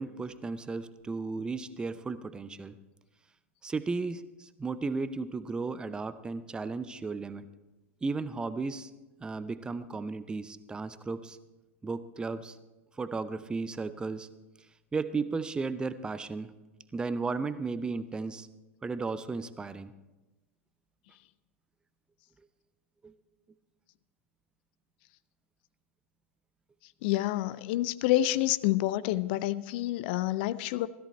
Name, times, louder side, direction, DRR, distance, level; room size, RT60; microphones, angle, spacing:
voice 1, 0.0-2.8 3.6-7.5 8.0-8.9 9.2-11.4 11.8-12.6 13.0-14.3 14.9-16.5 16.9-18.5 18.8-19.9 23.0-23.1, right 4 dB, 10° right, 14 dB, 0.6 m, -34 dB
voice 2, 27.0-30.9, left 15 dB, 50° left, 17 dB, 0.4 m, -28 dB
16.5 x 13.5 x 4.3 m, 1.1 s
figure-of-eight pair, 90°, 7 cm